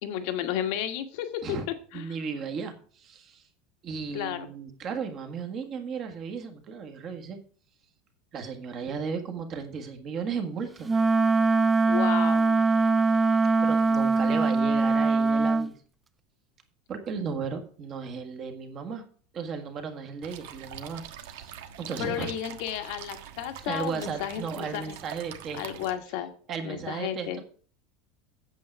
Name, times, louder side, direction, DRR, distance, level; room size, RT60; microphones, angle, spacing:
voice 1, 0.0-1.6 1.9-2.0 4.1-4.5 11.9-12.6 22.0-25.0 25.5-26.3 26.6-27.4, left 11 dB, 55° left, 8 dB, 1.3 m, -33 dB
voice 2, 1.9-3.4 3.8-7.4 8.3-10.9 13.6-15.7 16.9-19.0 19.3-22.3 23.6-25.6 26.5-27.4, right 5 dB, 30° right, 6 dB, 1.5 m, -35 dB
Wind instrument woodwind instrument, 10.8-15.7, right 3 dB, 10° right, 0.3 m, -22 dB
sound 1, 20.2-25.9, right 10 dB, 75° right, 1.3 m, -44 dB
8.5 x 7.9 x 4.6 m, 0.43 s
supercardioid pair, 170°, 0 cm